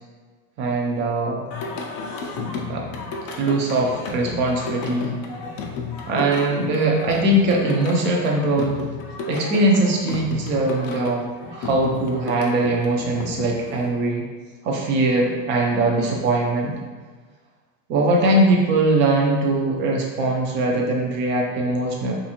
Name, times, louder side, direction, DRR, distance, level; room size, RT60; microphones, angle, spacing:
voice 1, 0.6-1.5 2.0-2.1 2.7-2.9 3.4-5.2 6.1-8.8 9.3-11.3 11.5-14.3 14.6-16.8 17.9-22.1, right 2 dB, 30° right, 0 dB, 0.4 m, -21 dB
Singing, 1.5-13.9, left 4 dB, 40° left, 0.4 m, -33 dB
2.6 x 2.5 x 2.8 m, 1.4 s
supercardioid pair, 125°, 44 cm